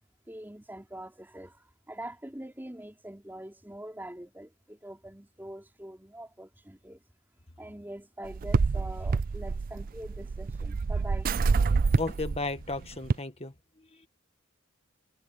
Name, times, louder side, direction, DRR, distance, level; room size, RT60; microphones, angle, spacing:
voice 1, 0.3-1.6 1.9-7.0 7.6-11.3, right 1 dB, 10° right, 3.2 m, -44 dB
sound 1, 8.3-13.1, right 4 dB, 45° right, 0.4 m, -27 dB
voice 2, 12.0-13.5, left 2 dB, 30° left, 1.7 m, -34 dB
head